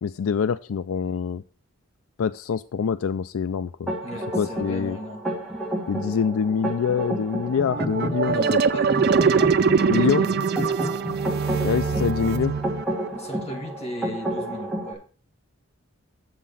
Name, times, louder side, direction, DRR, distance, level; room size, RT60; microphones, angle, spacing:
voice 1, 0.0-1.4 2.2-3.9 4.3-5.0 5.9-8.6 9.9-10.2 11.6-12.5, left 6 dB, 75° left, 0.4 m, -25 dB
sound 1, 3.9-14.9, right 1 dB, ahead, 2.7 m, -31 dB
voice 2, 4.0-5.3 8.3-9.3 10.0-10.8 13.2-15.0, left 1 dB, 30° left, 1.6 m, -36 dB
sound 2, 7.7-13.1, right 5 dB, 45° right, 0.4 m, -22 dB
7.4 x 5.9 x 7.0 m
head